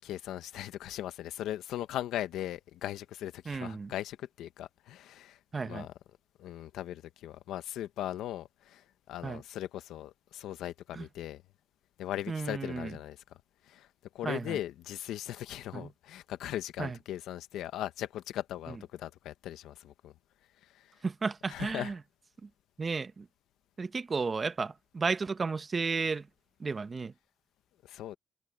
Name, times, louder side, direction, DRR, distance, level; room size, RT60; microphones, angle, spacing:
voice 1, 0.0-5.4 5.6-5.9 6.4-11.4 12.0-13.2 13.7-13.9 14.1-20.1 20.6-20.9 21.5-21.9 27.8-28.2, left 12 dB, 85° left, 1.2 m, -39 dB
voice 2, 3.5-3.9 5.5-5.9 9.2-9.4 10.9-11.1 12.3-13.0 14.2-14.6 15.7-15.9 16.8-17.0 21.0-22.0 22.4-22.5 22.8-23.3 23.8-26.3 26.6-27.1, right 4 dB, 35° right, 1.1 m, -33 dB
cardioid pair, 90°, 0 cm